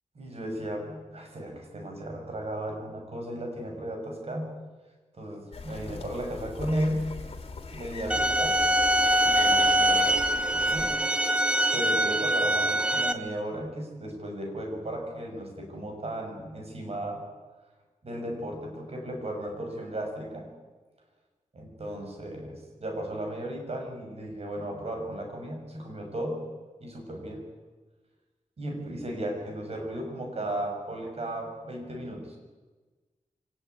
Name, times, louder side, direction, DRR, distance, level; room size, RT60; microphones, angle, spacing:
voice 1, 0.1-4.6 5.1-7.1 7.7-8.6 9.2-10.2 10.5-11.0 11.6-17.2 18.0-20.5 21.5-26.4 26.8-27.5 28.6-32.4, right 1 dB, 50° right, 2 dB, 6.8 m, -35 dB
sound 1, 5.5-11.0, left 3 dB, 50° left, 3.5 m, -41 dB
sound 2, 8.1-13.1, right 1 dB, 10° right, 2.0 m, -23 dB
25.0 x 18.0 x 9.5 m, 1.3 s
wide cardioid pair, 100°, 13 cm